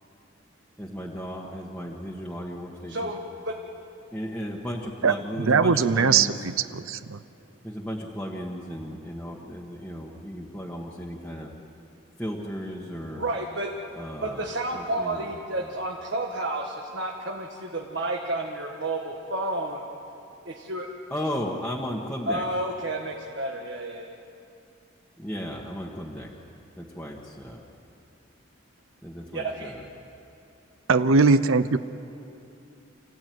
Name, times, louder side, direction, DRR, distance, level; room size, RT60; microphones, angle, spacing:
voice 1, 0.8-3.0 4.1-6.3 7.6-11.5 12.2-13.2 13.9-14.5 14.7-15.3 21.1-22.4 25.2-26.3 26.8-27.6 29.0-29.8, equal, 5° left, -4 dB, 1.6 m, -35 dB
voice 2, 2.9-3.2 3.4-3.5 13.1-13.7 14.2-19.8 20.4-20.9 22.3-24.1 29.3-29.7, right 2 dB, 55° right, 0 dB, 1.6 m, -31 dB
voice 3, 5.0-7.2 30.9-31.8, right 4 dB, 85° right, 13 dB, 0.7 m, -21 dB
28.0 x 15.5 x 9.5 m, 2.7 s
head